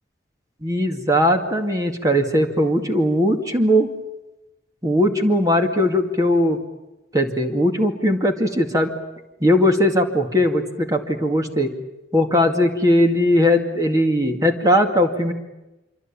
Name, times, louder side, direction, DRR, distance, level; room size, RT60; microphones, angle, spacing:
voice 1, 0.6-3.9 4.8-6.6 7.1-8.9 9.4-11.7 12.1-15.3, equal, 20° right, 4 dB, 2.2 m, -19 dB
26.0 x 25.0 x 8.8 m, 0.98 s
head